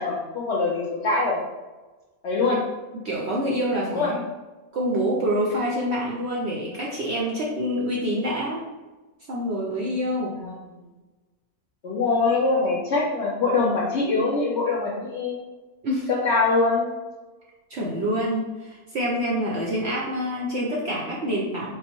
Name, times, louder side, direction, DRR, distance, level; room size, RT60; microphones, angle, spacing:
voice 1, 0.0-1.4 2.2-2.6 3.9-4.1 10.4-10.6 11.8-15.4 16.2-17.0, left 3 dB, 65° left, -3 dB, 0.7 m, -23 dB
voice 2, 3.0-4.2 4.7-8.6 9.3-10.4 15.8-16.1 17.7-21.8, equal, 60° right, -4 dB, 0.7 m, -26 dB
3.6 x 2.0 x 4.3 m, 1.2 s
omnidirectional pair, 1.6 m